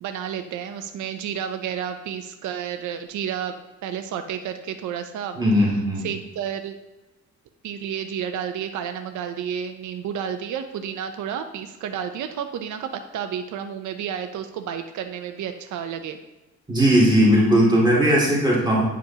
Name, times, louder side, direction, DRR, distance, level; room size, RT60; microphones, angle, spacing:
voice 1, 0.0-3.6 3.8-5.4 6.0-6.8 7.6-16.2, right 8 dB, 70° right, 7 dB, 0.6 m, -31 dB
voice 2, 5.4-6.1 16.7-18.8, equal, 15° right, -6 dB, 2.4 m, -18 dB
8.9 x 5.0 x 2.8 m, 1.1 s
cardioid pair, 120°, 31 cm